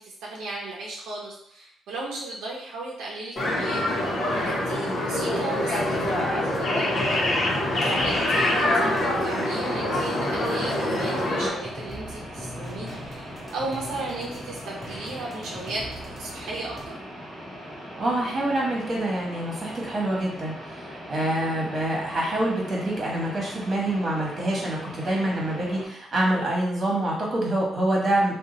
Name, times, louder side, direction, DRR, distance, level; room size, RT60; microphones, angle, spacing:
voice 1, 0.0-3.8 4.3-7.2 7.8-16.9, right 2 dB, 85° right, -3 dB, 0.6 m, -35 dB
sound 1, 3.4-11.5, left 1 dB, 45° left, 1.0 m, -25 dB
sound 2, 5.9-16.9, left 1 dB, 15° left, 0.8 m, -42 dB
sound 3, 7.7-25.9, equal, ahead, 1.4 m, -40 dB
voice 2, 18.0-28.3, right 1 dB, 40° right, -2 dB, 1.3 m, -26 dB
2.7 x 2.3 x 3.9 m, 0.70 s
cardioid pair, 90°, 0 cm